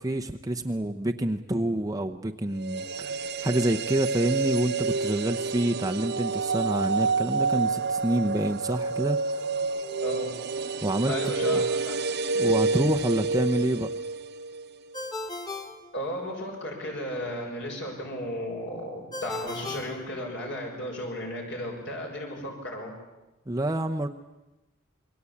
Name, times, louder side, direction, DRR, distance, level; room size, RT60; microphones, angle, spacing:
voice 1, 0.0-3.1 3.4-9.4 10.8-11.6 12.4-13.9 23.5-24.1, right 1 dB, 15° right, 4 dB, 0.8 m, -27 dB
sound 1, 2.6-14.7 14.9-15.0, right 4 dB, 55° right, 0.9 m, -28 dB
voice 2, 10.0-10.4 11.1-12.0 15.9-22.9, left 1 dB, 60° left, 0 dB, 6.6 m, -34 dB
Ringtone, 14.9-16.6 19.1-20.8, left 2 dB, 20° left, 2.5 m, -38 dB
27.5 x 22.5 x 8.6 m, 1.0 s
head